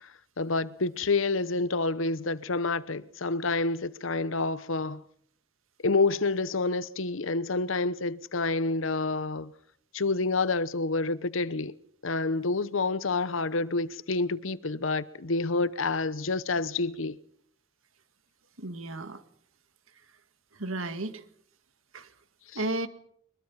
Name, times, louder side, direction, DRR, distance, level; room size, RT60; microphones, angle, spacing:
voice 1, 0.0-5.0 5.8-9.5 9.9-11.7 12.0-17.2 22.5-22.6, left 3 dB, 75° left, 1.0 m, -28 dB
voice 2, 18.6-19.2 20.6-21.2 21.9-22.1 22.5-22.9, right 2 dB, 90° right, 2.0 m, -33 dB
23.5 x 22.0 x 5.8 m
head